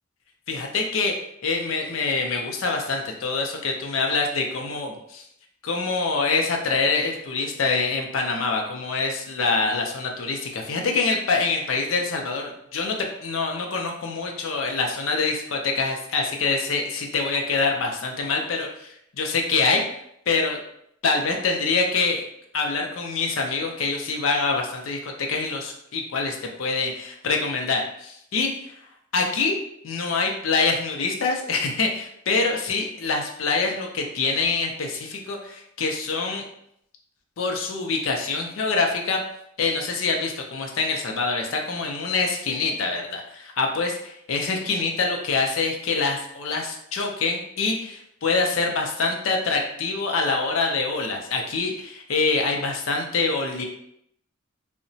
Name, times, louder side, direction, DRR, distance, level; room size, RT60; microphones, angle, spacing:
voice 1, 0.5-1.1 1.4-5.2 5.6-19.8 20.3-20.6 21.0-22.2 22.5-28.7 29.1-29.6 29.8-36.4 37.4-39.2 39.6-53.6, left 4 dB, 70° left, 2 dB, 0.5 m, -25 dB
2.8 x 2.1 x 2.6 m, 0.74 s
head